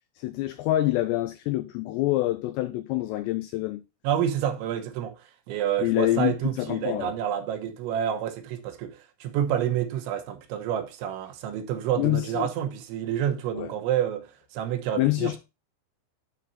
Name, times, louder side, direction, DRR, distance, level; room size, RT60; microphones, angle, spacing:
voice 1, 0.2-3.8 5.8-7.1 12.0-12.5 13.5-13.7 15.0-15.4, left 16 dB, 85° left, 2.4 m, -26 dB
voice 2, 4.0-15.4, right 10 dB, 80° right, 3.4 m, -29 dB
12.0 x 4.3 x 4.1 m
omnidirectional pair, 5.4 m